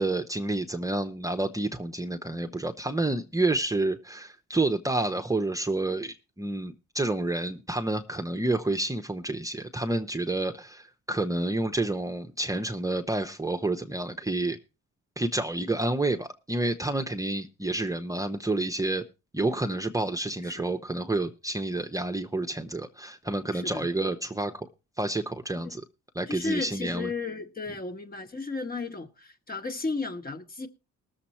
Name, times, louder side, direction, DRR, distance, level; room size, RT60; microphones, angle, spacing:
voice 1, 0.0-14.6 15.2-19.0 19.3-24.7 25.0-25.8 26.1-27.1, right 2 dB, 10° right, 0.9 m, -29 dB
voice 2, 23.5-23.9 25.6-25.7 26.3-30.7, left 3 dB, 30° left, 1.7 m, -34 dB
19.0 x 7.2 x 4.4 m
cardioid pair, 90°, 30 cm